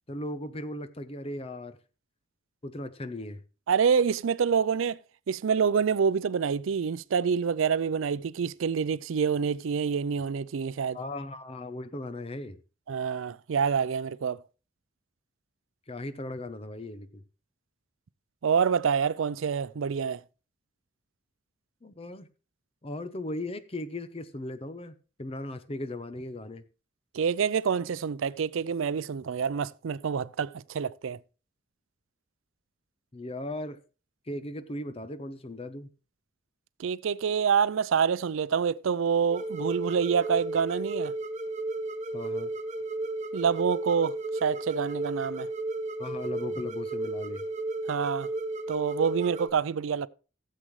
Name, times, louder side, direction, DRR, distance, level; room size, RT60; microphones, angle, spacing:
voice 1, 0.1-1.8 2.6-3.4 10.9-12.6 15.9-17.2 21.8-22.3 22.8-24.9 25.2-26.6 33.1-33.8 34.3-35.9 42.1-42.5 46.0-47.4, left 1 dB, 30° left, 0.7 m, -37 dB
voice 2, 3.7-5.0 5.3-11.0 12.9-14.4 18.4-20.2 27.1-31.2 36.8-41.1 43.3-45.5 47.9-48.3 48.7-50.1, right 6 dB, 80° right, 0.4 m, -27 dB
sound 1, 39.3-49.5, right 2 dB, 35° right, 1.1 m, -34 dB
16.0 x 7.6 x 3.2 m
head